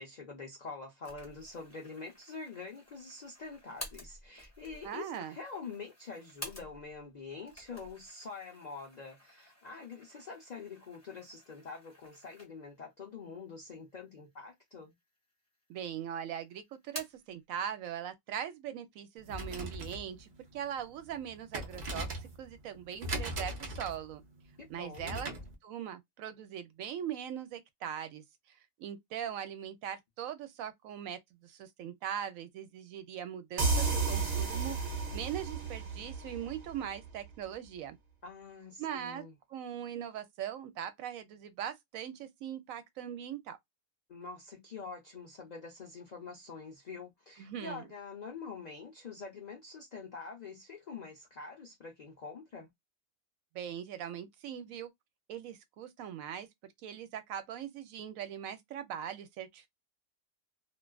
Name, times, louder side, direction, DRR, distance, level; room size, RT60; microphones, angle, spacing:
voice 1, 0.0-14.9 24.6-25.3 38.2-39.3 44.1-52.7, left 4 dB, 60° left, 0.4 m, -46 dB
sound 1, 1.0-7.0 7.4-12.8 13.2-13.3 14.2-14.8 15.2-15.9 16.2-17.3, left 1 dB, 15° left, 0.9 m, -51 dB
voice 2, 4.8-5.3 15.7-24.2 24.7-25.3 25.6-34.8 35.1-38.0 38.8-39.2 39.5-43.6 47.4-47.9 53.5-54.9 55.3-56.5 56.8-59.7, right 9 dB, 80° right, 1.0 m, -40 dB
sound 2, 19.2-25.5, right 1 dB, 45° right, 0.6 m, -41 dB
sound 3, 33.6-37.1, right 4 dB, 60° right, 1.0 m, -32 dB
2.4 x 2.3 x 2.2 m
omnidirectional pair, 1.4 m